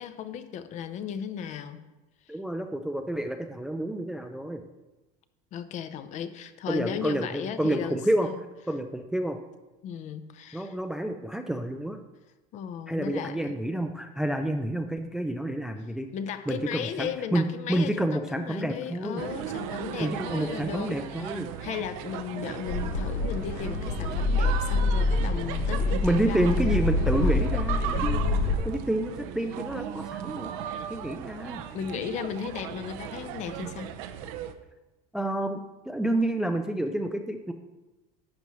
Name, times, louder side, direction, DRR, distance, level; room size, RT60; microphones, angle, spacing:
voice 1, 0.0-1.9 2.3-2.4 5.5-8.4 9.8-10.8 12.5-13.5 16.1-21.3 21.6-27.1 31.7-33.9, left 8 dB, 45° left, 11 dB, 0.6 m, -36 dB
voice 2, 2.3-4.6 6.7-8.3 8.7-9.4 10.5-12.0 12.9-16.1 16.5-19.2 20.0-21.5 26.0-28.2 28.7-30.5 30.9-31.6 35.1-37.5, right 1 dB, 5° right, 6 dB, 0.3 m, -29 dB
sound 1, 19.2-34.5, right 9 dB, 85° right, 0.7 m, -37 dB
sound 2, 22.7-28.5, left 2 dB, 70° left, 1.5 m, -26 dB
11.5 x 8.3 x 3.1 m, 1.1 s
cardioid pair, 155°, 17 cm